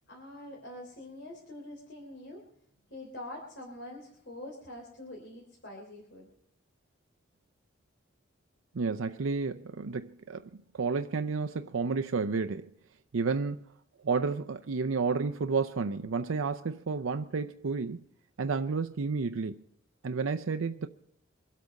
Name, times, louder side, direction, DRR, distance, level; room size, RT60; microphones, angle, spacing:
voice 1, 0.1-2.4 2.9-6.3, left 1 dB, 60° left, 3.3 m, -45 dB
voice 2, 8.7-12.7 13.1-13.6 14.0-18.0 18.4-19.6 20.0-20.9, right 4 dB, 90° right, 0.5 m, -31 dB
24.5 x 8.4 x 5.3 m
head